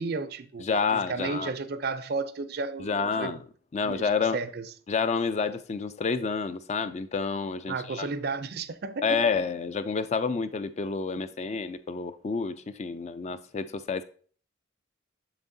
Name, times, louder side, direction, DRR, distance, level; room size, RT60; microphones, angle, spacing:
voice 1, 0.0-0.6 0.9-3.4 3.8-4.7 7.7-9.2, right 4 dB, 50° right, 0.5 m, -33 dB
voice 2, 0.6-1.5 2.8-3.4 3.7-4.4 4.9-8.1 9.0-14.0, left 5 dB, 35° left, 0.3 m, -29 dB
7.1 x 6.8 x 2.7 m
head